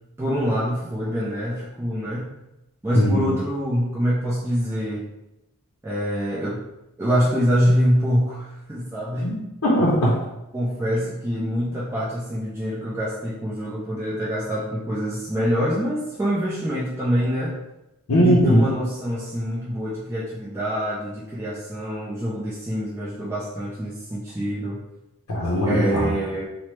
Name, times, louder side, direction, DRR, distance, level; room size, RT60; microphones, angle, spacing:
voice 1, 0.2-2.3 2.8-5.1 5.8-6.6 7.0-9.3 10.5-17.6 18.2-24.8 25.7-26.5, equal, 10° right, -8 dB, 0.3 m, -25 dB
voice 2, 2.9-3.3 9.2-10.2 18.1-18.6 25.3-26.1, equal, 75° left, -4 dB, 0.6 m, -19 dB
2.9 x 2.1 x 3.1 m, 0.93 s
head